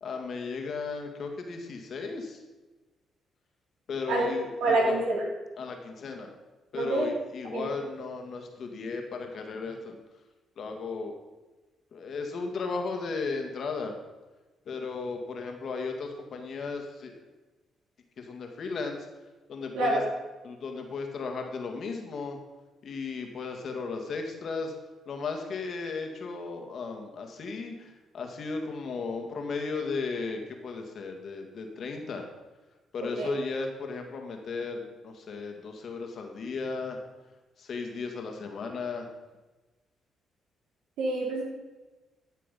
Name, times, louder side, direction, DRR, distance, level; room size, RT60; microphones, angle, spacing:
voice 1, 0.0-2.4 3.9-5.0 5.6-6.3 6.7-10.0 10.6-11.1 11.9-14.0 14.7-17.2 18.2-19.0 19.5-20.0 20.4-22.4 22.8-24.7 25.1-32.3 32.9-37.0 37.6-39.1, left 4 dB, 55° left, 4 dB, 2.0 m, -35 dB
voice 2, 4.6-5.2 6.8-7.1 7.5-7.7 19.7-20.0 33.2-33.3 41.0-41.4, right 2 dB, 85° right, -2 dB, 3.5 m, -26 dB
13.5 x 6.7 x 5.4 m, 1.2 s
cardioid pair, 90°, 0 cm